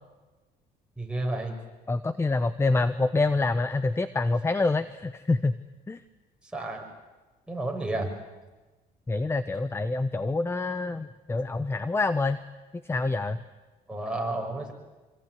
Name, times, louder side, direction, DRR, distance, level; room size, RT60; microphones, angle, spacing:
voice 1, 1.0-1.6 6.5-6.9 7.5-8.1 13.9-14.7, right 2 dB, 5° right, 0 dB, 6.7 m, -31 dB
voice 2, 1.9-5.6 5.9-6.0 9.1-12.4 12.9-13.4, left 3 dB, 15° left, 13 dB, 0.9 m, -26 dB
25.5 x 24.0 x 9.7 m, 1.2 s
cardioid pair, 110°, 17 cm